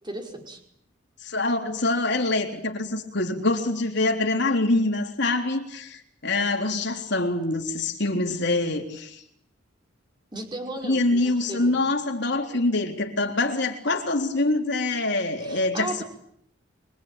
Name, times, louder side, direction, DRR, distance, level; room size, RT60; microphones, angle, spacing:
voice 1, 0.0-0.6 10.3-11.8 15.4-16.0, right 1 dB, 25° right, 2 dB, 5.5 m, -35 dB
voice 2, 1.2-9.2 10.8-16.0, left 2 dB, 60° left, 3 dB, 3.7 m, -25 dB
24.5 x 24.5 x 9.0 m, 0.72 s
head